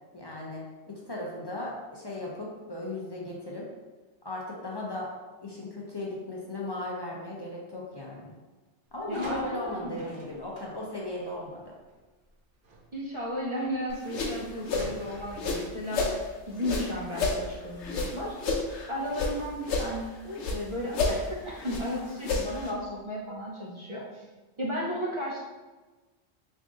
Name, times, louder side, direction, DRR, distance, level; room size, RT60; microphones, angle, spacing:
voice 1, 0.1-3.6 4.2-5.1 5.4-8.3 8.9-11.6, left 2 dB, 35° left, -3 dB, 0.4 m, -36 dB
sound 1, 8.9-16.5, right 1 dB, 60° right, 1.0 m, -49 dB
voice 2, 9.1-10.2 12.9-16.1 16.5-18.6 18.9-24.3 24.6-25.4, equal, 40° right, -5 dB, 0.4 m, -34 dB
sound 2, 13.9-16.2 16.6-19.3 19.6-20.6 20.9-22.7, left 3 dB, 80° left, 0.9 m, -30 dB
3.5 x 2.5 x 3.6 m, 1.2 s
omnidirectional pair, 1.2 m